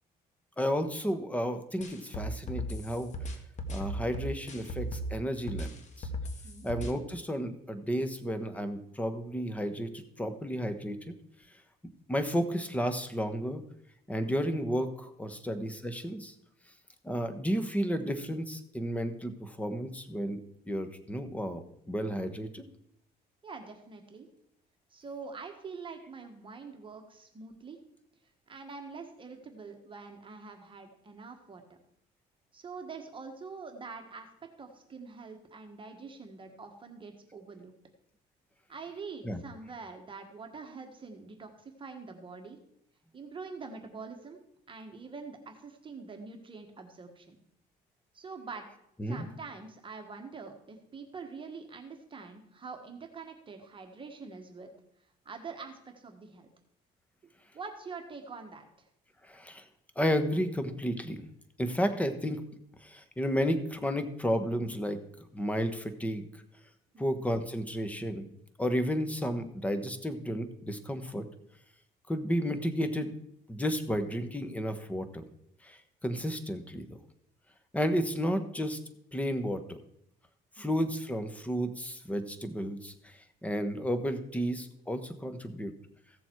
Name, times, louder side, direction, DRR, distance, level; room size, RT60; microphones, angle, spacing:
voice 1, 0.6-3.1 3.7-6.1 6.6-11.2 12.1-13.6 14.1-16.3 17.0-20.4 20.7-22.6 39.2-39.4 49.0-49.2 59.2-59.7 60.0-61.3 61.6-62.4 62.8-65.0 65.3-66.3 67.0-68.3 68.6-71.3 72.1-73.2 73.5-75.2 75.6-77.0 77.7-78.8 79.1-79.8 80.6-85.7, equal, 10° left, 8 dB, 1.2 m, -32 dB
sound 1, 1.8-5.1 5.5-6.9, equal, 45° left, 1.7 m, -36 dB
voice 2, 23.4-24.3 24.9-27.8 28.5-31.6 32.5-37.7 38.7-42.6 43.1-44.4 44.7-47.4 48.1-48.7 49.1-54.7 55.2-56.5 57.5-58.9 66.9-67.2 80.6-80.8, right 4 dB, 30° right, 4 dB, 1.5 m, -45 dB
15.5 x 7.1 x 4.7 m, 0.74 s
cardioid pair, 110°, 17 cm